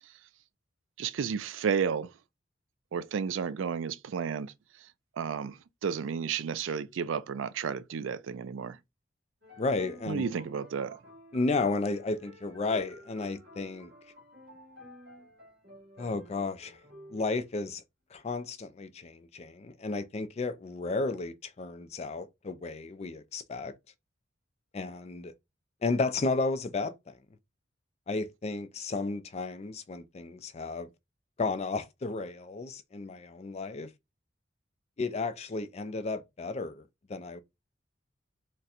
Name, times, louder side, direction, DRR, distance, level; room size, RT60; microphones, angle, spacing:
voice 1, 1.0-2.1 2.9-4.5 5.2-5.6 5.8-8.8 10.1-11.0, right 6 dB, 85° right, 0.4 m, -32 dB
sound 1, 9.4-17.5, equal, 60° right, 1.4 m, -52 dB
voice 2, 9.6-10.3 11.3-13.9 16.0-16.8 17.1-17.8 18.1-23.7 24.7-25.3 25.8-27.1 28.1-30.9 31.4-33.9 35.0-36.8 37.1-37.4, left 3 dB, 35° left, 0.4 m, -33 dB
4.1 x 2.2 x 2.4 m
head